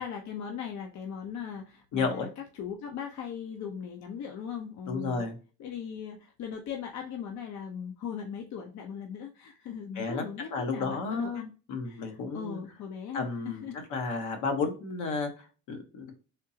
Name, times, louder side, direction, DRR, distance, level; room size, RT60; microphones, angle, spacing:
voice 1, 0.0-5.3 5.6-11.5 11.8-13.9, left 7 dB, 65° left, 3 dB, 0.7 m, -39 dB
voice 2, 1.9-2.3 4.9-5.4 9.9-10.3 10.5-11.4 11.7-12.6 13.1-16.1, left 4 dB, 80° left, 4 dB, 1.1 m, -32 dB
3.6 x 2.8 x 2.7 m, 0.35 s
cardioid pair, 95°, 30 cm